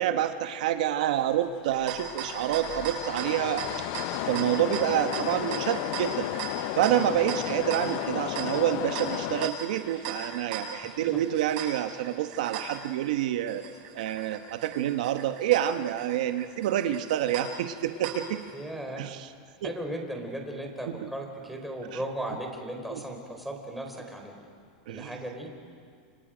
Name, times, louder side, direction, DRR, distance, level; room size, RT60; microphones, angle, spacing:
voice 1, 0.0-3.7 4.3-6.3 6.8-13.6 13.9-18.4 19.0-19.3 19.6-19.7 20.9-21.1 21.9-22.0 22.9-23.0 24.9-25.2, right 11 dB, 75° right, 8 dB, 1.0 m, -28 dB
sound 1, 1.1-9.5, left 16 dB, 55° left, 0.6 m, -34 dB
sound 2, 1.6-18.5, right 5 dB, 55° right, 7.2 m, -39 dB
voice 2, 10.8-11.2 14.1-14.3 18.5-19.0 19.6-24.4 24.9-25.5, right 1 dB, ahead, 1 dB, 4.1 m, -37 dB
29.5 x 27.5 x 5.1 m, 2.2 s
supercardioid pair, 135°, 4 cm